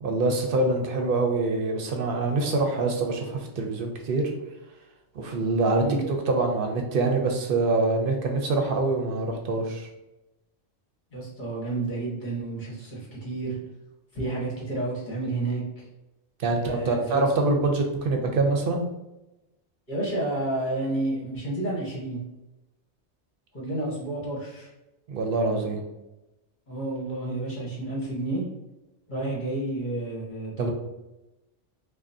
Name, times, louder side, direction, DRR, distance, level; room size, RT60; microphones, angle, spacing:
voice 1, 0.0-4.3 5.1-9.9 16.4-18.8 25.1-25.8 30.6-30.7, right 3 dB, 55° right, 3 dB, 0.8 m, -25 dB
voice 2, 11.1-13.6 14.1-15.8 16.5-17.3 19.9-22.2 23.5-24.7 26.7-28.4 29.1-30.7, right 2 dB, 40° left, -6 dB, 1.5 m, -30 dB
5.0 x 2.2 x 2.7 m, 0.98 s
omnidirectional pair, 1.2 m